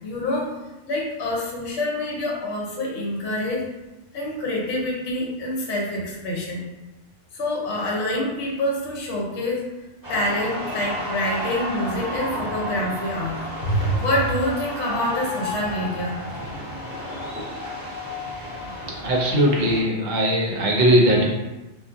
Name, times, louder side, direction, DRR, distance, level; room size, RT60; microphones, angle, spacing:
voice 1, 0.0-0.5 0.9-3.7 4.1-6.6 7.3-9.6 10.1-16.1, left 1 dB, 70° left, -3 dB, 0.9 m, -26 dB
sound 1, 10.0-19.8, left 1 dB, 10° right, 1.1 m, -32 dB
voice 2, 19.0-21.3, equal, 60° right, -2 dB, 0.7 m, -19 dB
2.5 x 2.3 x 2.5 m, 1.0 s
omnidirectional pair, 1.2 m